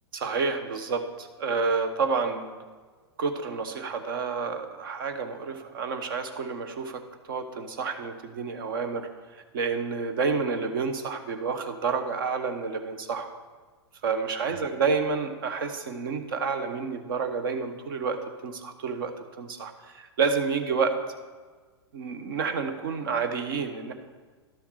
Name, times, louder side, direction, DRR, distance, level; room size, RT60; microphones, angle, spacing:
voice 1, 0.1-2.6 3.2-7.0 7.3-13.3 14.0-20.9 21.9-23.9, right 5 dB, 50° right, 8 dB, 1.2 m, -29 dB
11.5 x 6.9 x 4.9 m, 1.4 s
figure-of-eight pair, 100°, 14 cm